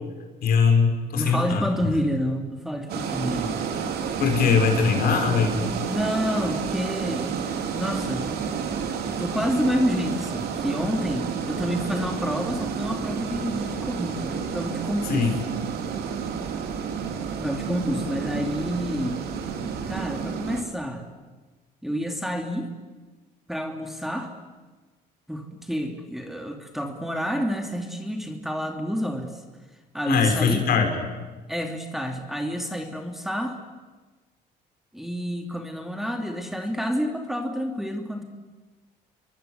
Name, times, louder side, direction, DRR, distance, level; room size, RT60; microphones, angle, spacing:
voice 1, 0.4-1.6 4.2-5.7 15.0-15.4 30.1-31.0, left 5 dB, 60° left, 4 dB, 5.7 m, -21 dB
voice 2, 1.1-3.7 5.5-7.3 7.7-8.3 9.1-15.3 17.4-19.2 19.9-21.0 21.8-22.7 23.5-24.3 25.3-29.4 29.9-30.7 31.5-33.6 34.9-38.2, equal, ahead, 4 dB, 3.0 m, -29 dB
sound 1, 2.9-20.6, right 6 dB, 70° right, 3.7 m, -30 dB
29.0 x 23.5 x 8.2 m, 1.3 s
cardioid pair, 110°, 17 cm